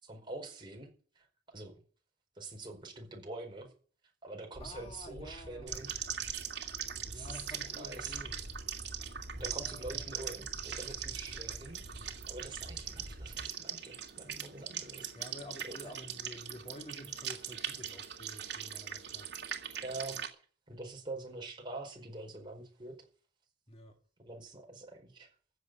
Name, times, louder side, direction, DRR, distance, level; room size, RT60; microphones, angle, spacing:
voice 1, 0.0-1.3 1.5-1.8 2.3-3.7 4.2-5.9 7.1-8.3 9.3-15.1 15.6-15.7 19.8-20.2 20.7-23.1 24.3-25.3, right 2 dB, 25° right, 4.9 m, -45 dB
sound 1, 4.5-13.5, equal, 55° right, 7.3 m, -48 dB
voice 2, 4.6-5.8 7.1-8.5 9.4-10.2 15.2-19.3 23.7-24.0, left 1 dB, 35° left, 1.8 m, -50 dB
sound 2, 5.7-20.3, right 9 dB, 70° right, 2.5 m, -41 dB
15.5 x 6.8 x 9.5 m
head